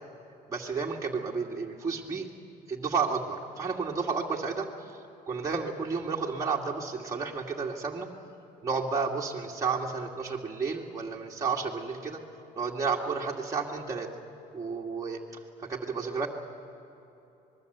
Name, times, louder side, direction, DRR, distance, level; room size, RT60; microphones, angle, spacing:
voice 1, 0.5-2.3 2.7-4.9 5.3-8.1 8.6-12.2 12.6-14.1 14.5-15.2 15.6-16.3, right 5 dB, 20° right, -2 dB, 2.1 m, -31 dB
25.5 x 21.0 x 8.0 m, 2.9 s
cardioid pair, 110°, 17 cm